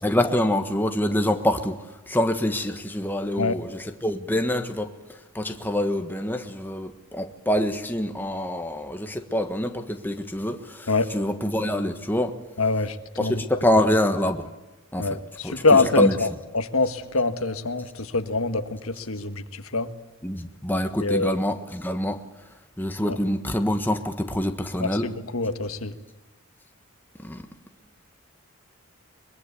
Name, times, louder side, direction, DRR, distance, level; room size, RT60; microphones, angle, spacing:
voice 1, 0.0-1.8 2.1-4.9 5.3-12.3 13.2-14.5 14.9-15.2 15.4-16.2 20.2-22.2 22.8-25.1 27.2-27.5, left 1 dB, 10° left, 1.4 m, -26 dB
voice 2, 12.6-12.9 13.2-13.4 15.0-19.4 19.7-19.9 21.0-21.3 23.1-23.2 24.8-25.9, left 3 dB, 80° left, 1.6 m, -24 dB
23.0 x 22.5 x 8.4 m
head